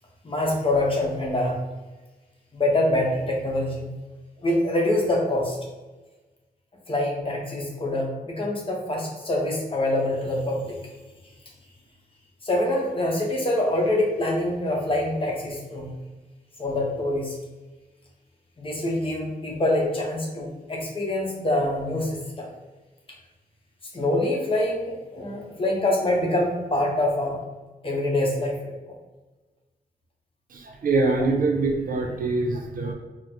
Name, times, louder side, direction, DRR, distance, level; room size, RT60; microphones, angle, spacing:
voice 1, 0.2-1.6 2.5-3.9 4.4-5.6 6.9-10.8 12.4-15.9 16.6-17.3 18.6-22.5 23.9-27.4 27.8-28.9, left 1 dB, 35° left, -1 dB, 0.8 m, -25 dB
voice 2, 30.5-32.9, right 3 dB, 65° right, 2 dB, 0.5 m, -24 dB
3.9 x 2.1 x 2.9 m, 1.2 s
wide cardioid pair, 105°, 16 cm